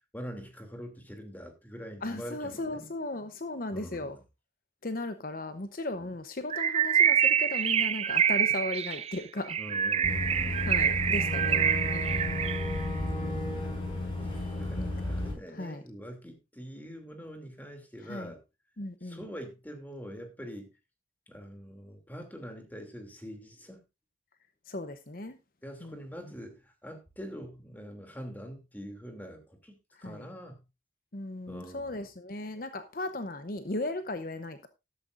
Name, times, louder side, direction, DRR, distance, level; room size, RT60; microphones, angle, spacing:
voice 1, 0.1-2.9 3.7-4.2 5.9-6.1 9.6-10.9 13.6-13.9 14.2-18.4 19.0-20.7 21.3-23.8 25.6-30.6 31.5-32.0, equal, 10° left, 2.8 m, -44 dB
voice 2, 2.0-4.2 4.8-9.6 10.7-11.7 11.9-12.5 14.8-15.1 15.5-15.8 18.0-18.3 18.8-19.2 24.7-25.4 25.8-26.0 30.0-30.2 31.1-34.7, left 2 dB, 50° left, 0.9 m, -36 dB
Bird, 6.5-12.8, right 8 dB, 35° right, 0.5 m, -26 dB
Boat Water vehicle / Engine, 10.0-15.3, left 2 dB, 30° left, 5.6 m, -33 dB
13.5 x 12.5 x 2.6 m
head